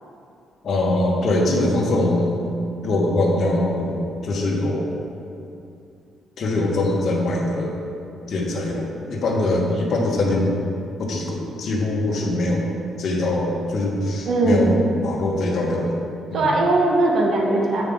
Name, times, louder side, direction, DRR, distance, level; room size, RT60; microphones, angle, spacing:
voice 1, 0.6-2.4 2.8-4.9 6.4-7.8 8.3-10.5 11.0-12.6 13.0-15.9 16.3-16.6, left 1 dB, 60° left, -2 dB, 1.3 m, -22 dB
voice 2, 14.2-14.9 16.3-17.8, right 2 dB, 60° right, -2 dB, 1.3 m, -19 dB
7.9 x 5.2 x 3.7 m, 2.5 s
cardioid pair, 90°, 0 cm